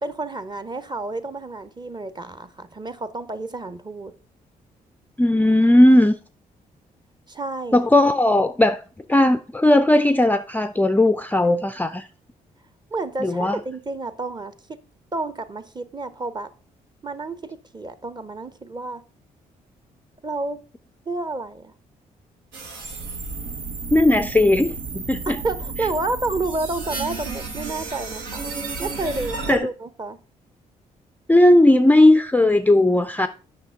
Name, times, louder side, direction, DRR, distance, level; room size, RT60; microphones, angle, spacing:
voice 1, 0.0-4.1 7.3-7.9 12.9-14.8 15.1-16.5 17.0-19.0 20.2-20.6 21.1-21.7 25.3-28.4 28.8-30.2, right 2 dB, 25° right, 0.8 m, -30 dB
voice 2, 5.2-6.1 7.7-8.8 9.1-12.1 13.2-13.6 23.9-25.4 29.5-29.7 31.3-33.3, left 1 dB, 10° left, 0.4 m, -17 dB
sound 1, 22.5-29.6, right 4 dB, 80° right, 1.1 m, -32 dB
8.0 x 5.6 x 3.6 m
hypercardioid pair, 45°, 18 cm